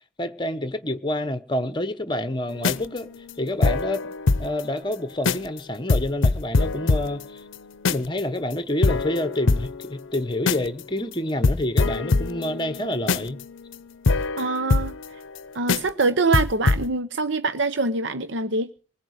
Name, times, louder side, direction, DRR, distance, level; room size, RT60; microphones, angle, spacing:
voice 1, 0.2-3.1 3.4-4.1 4.4-7.4 7.9-13.4, left 1 dB, 25° left, 1.1 m, -28 dB
sound 1, 2.5-4.6 4.9-5.0 5.2-5.6 5.9-8.2 8.5-8.6 8.8-10.8 11.1-11.2 11.4-15.4 15.7-16.0 16.3-16.9, left 3 dB, 70° left, 0.7 m, -24 dB
voice 2, 14.4-15.0 15.5-18.7, right 3 dB, 60° right, 0.8 m, -24 dB
20.0 x 9.3 x 6.5 m
head